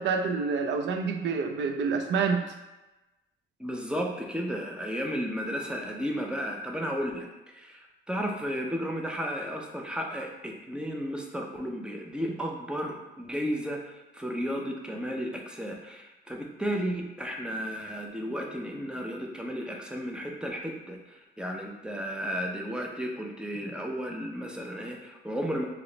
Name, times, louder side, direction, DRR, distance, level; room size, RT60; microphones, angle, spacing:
voice 1, 0.0-2.4, right 5 dB, 65° right, 6 dB, 0.4 m, -27 dB
voice 2, 3.6-25.7, equal, 5° right, 0 dB, 0.5 m, -33 dB
2.9 x 2.1 x 3.8 m, 1.1 s
cardioid pair, 90°, 20 cm